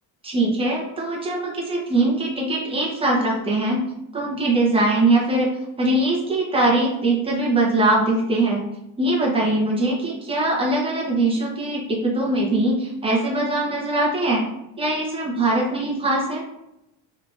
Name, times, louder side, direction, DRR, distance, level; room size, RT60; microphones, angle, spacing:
voice 1, 0.2-3.8 4.1-5.5 5.8-8.6 9.0-14.5 14.8-16.4, right 2 dB, 10° right, -3 dB, 0.9 m, -21 dB
3.6 x 3.5 x 2.5 m, 0.84 s
cardioid pair, 155°, 44 cm